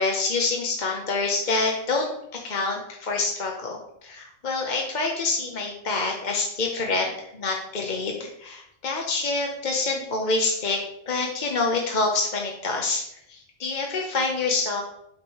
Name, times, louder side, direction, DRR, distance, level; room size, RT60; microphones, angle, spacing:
voice 1, 0.0-14.8, left 3 dB, 40° left, 1 dB, 0.8 m, -27 dB
8.5 x 3.1 x 6.2 m, 0.76 s
omnidirectional pair, 1.4 m